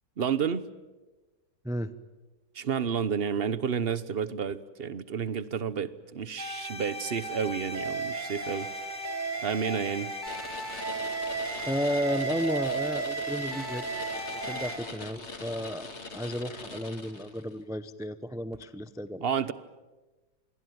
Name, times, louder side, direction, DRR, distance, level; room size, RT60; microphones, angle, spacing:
voice 1, 0.2-0.6 2.6-8.7 9.4-10.1 19.2-19.5, right 7 dB, 40° right, 16 dB, 0.9 m, -30 dB
sound 1, 6.4-14.8, right 3 dB, 25° right, 4.8 m, -34 dB
sound 2, 10.3-17.5, left 3 dB, 40° left, 2.4 m, -42 dB
voice 2, 11.7-13.9 14.4-19.3, equal, 5° right, 13 dB, 0.3 m, -33 dB
26.5 x 21.0 x 9.4 m, 1.2 s
omnidirectional pair, 1.9 m